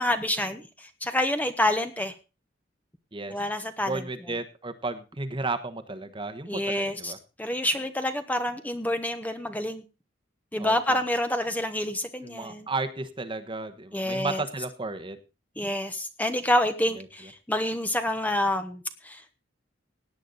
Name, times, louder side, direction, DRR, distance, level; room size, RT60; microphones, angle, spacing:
voice 1, 0.0-2.1 3.3-4.0 6.5-7.1 7.4-9.8 10.5-12.7 13.9-14.4 15.6-19.3, left 1 dB, 10° left, 8 dB, 1.0 m, -28 dB
voice 2, 3.8-7.2 10.6-11.0 12.2-15.2 16.9-17.1, right 3 dB, 25° right, 10 dB, 1.2 m, -33 dB
17.0 x 9.4 x 4.1 m, 0.32 s
head